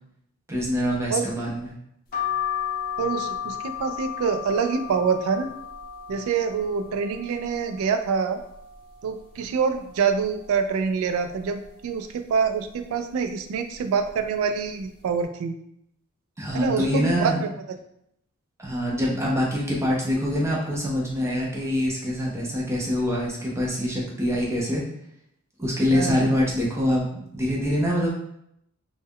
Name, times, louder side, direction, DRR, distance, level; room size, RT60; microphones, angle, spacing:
voice 1, 0.5-1.7 16.4-17.4 18.6-24.8 25.6-28.1, equal, 15° right, -4 dB, 0.5 m, -25 dB
sound 1, 2.1-7.8 8.2-9.0 9.4-9.5 9.7-10.8 11.3-11.7 12.4-12.8 13.5-13.8 14.0-14.2, left 9 dB, 40° left, 0.5 m, -33 dB
voice 2, 3.0-5.5 6.1-8.4 9.0-15.6 16.5-17.5 25.9-26.3, right 5 dB, 75° right, 10 dB, 0.3 m, -26 dB
2.2 x 2.0 x 3.5 m, 0.76 s
head